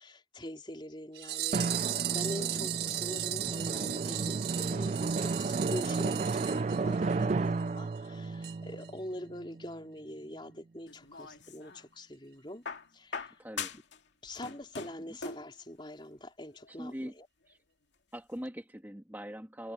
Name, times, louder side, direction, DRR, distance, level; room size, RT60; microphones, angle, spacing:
voice 1, 0.0-12.7 12.9-13.4 14.2-17.3, left 1 dB, 25° left, 4.5 m, -44 dB
sound 1, 1.1-7.3 7.6-7.7 7.9-8.0 8.4-8.5 8.8-8.9, right 13 dB, 65° right, 1.7 m, -36 dB
Drum, 1.5-9.8, right 3 dB, 40° right, 0.3 m, -33 dB
sound 2, 10.9-11.9 12.6-14.0 14.3-15.5 16.6-16.7, left 5 dB, 80° left, 2.3 m, -41 dB
voice 2, 13.4-13.7 15.1-15.2 16.7-17.1 17.5-17.6 18.1-19.7, equal, 10° right, 2.0 m, -42 dB
head